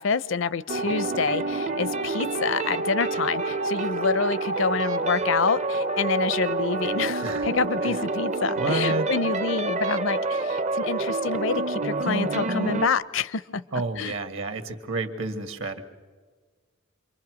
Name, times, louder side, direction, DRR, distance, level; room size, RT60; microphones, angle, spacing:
voice 1, 0.0-13.6 14.0-14.2, left 5 dB, 65° left, 0.6 m, -27 dB
sound 1, 0.7-12.9, right 2 dB, 35° right, 0.6 m, -27 dB
voice 2, 8.6-9.1 13.7-15.8, right 3 dB, 70° right, 1.8 m, -30 dB
27.0 x 23.0 x 6.2 m
head